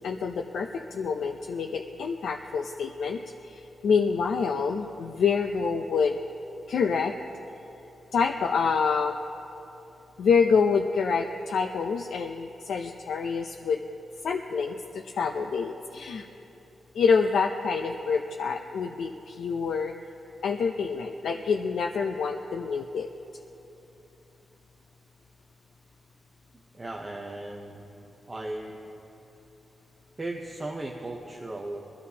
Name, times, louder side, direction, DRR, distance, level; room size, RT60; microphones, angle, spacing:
voice 1, 0.0-6.2 6.7-7.1 8.1-9.1 10.2-13.8 14.2-16.3 16.9-19.9 20.4-23.1, left 5 dB, 90° left, 3 dB, 0.5 m, -27 dB
voice 2, 26.7-27.8 28.3-28.8 30.2-31.8, right 2 dB, 20° right, 0 dB, 0.7 m, -36 dB
22.0 x 14.0 x 2.8 m, 2.9 s
wide cardioid pair, 170°, 0 cm